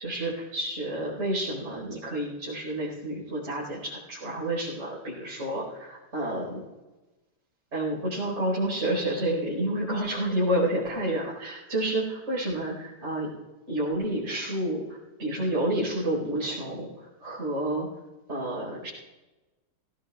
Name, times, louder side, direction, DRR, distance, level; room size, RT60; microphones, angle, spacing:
voice 1, 0.0-6.6 7.7-13.3 13.7-16.9 17.2-17.9 18.3-18.9, right 1 dB, 30° right, -7 dB, 5.0 m, -29 dB
21.5 x 17.5 x 2.4 m, 1.1 s
omnidirectional pair, 2.4 m